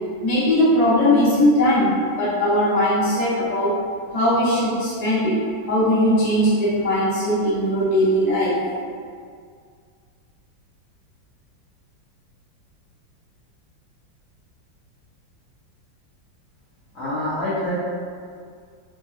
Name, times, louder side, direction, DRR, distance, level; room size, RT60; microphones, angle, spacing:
voice 1, 0.0-3.7 4.1-5.4 5.7-8.6, left 1 dB, 75° left, -10 dB, 0.3 m, -19 dB
voice 2, 16.9-17.8, left 1 dB, 55° left, -10 dB, 1.0 m, -25 dB
3.4 x 2.1 x 2.6 m, 2.1 s
omnidirectional pair, 2.1 m